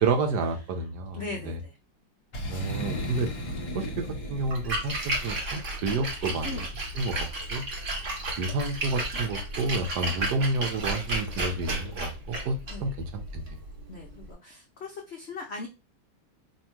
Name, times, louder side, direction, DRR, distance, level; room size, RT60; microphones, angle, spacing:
voice 1, 0.0-1.6 2.5-3.3 3.7-7.6 8.4-13.6, right 3 dB, 70° right, 5 dB, 1.1 m, -30 dB
voice 2, 1.1-1.8 6.4-6.7 12.7-12.9 13.9-15.7, left 3 dB, 75° left, 1 dB, 0.6 m, -39 dB
Boom, 2.3-5.1, equal, 40° left, 1.0 m, -35 dB
Splash splatter, 4.4-14.3, right 1 dB, 45° right, 1.2 m, -33 dB
2.9 x 2.8 x 4.4 m, 0.27 s
omnidirectional pair, 2.1 m